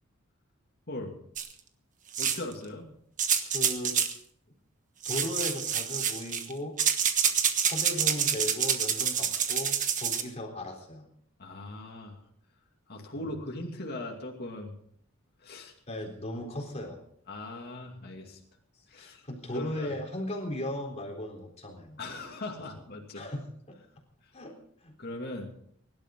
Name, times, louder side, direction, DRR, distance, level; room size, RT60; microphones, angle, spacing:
sound 1, 1.4-1.5 2.1-2.5 3.2-4.2 5.0-6.5 6.8-10.2, right 8 dB, 40° right, 1.4 m, -27 dB
voice 1, 2.2-2.9 11.4-12.2 12.9-14.7 15.4-15.7 17.3-18.4 18.9-19.2 19.5-19.9 22.0-23.2 25.0-25.5, left 2 dB, 50° left, 0 dB, 2.5 m, -39 dB
voice 2, 3.5-4.0 5.1-6.8 7.6-11.1 13.2-13.3 15.9-17.0 19.0-22.0 23.1-23.8 24.3-25.0, left 1 dB, 35° left, 1 dB, 3.8 m, -37 dB
23.5 x 12.0 x 3.8 m, 0.65 s
head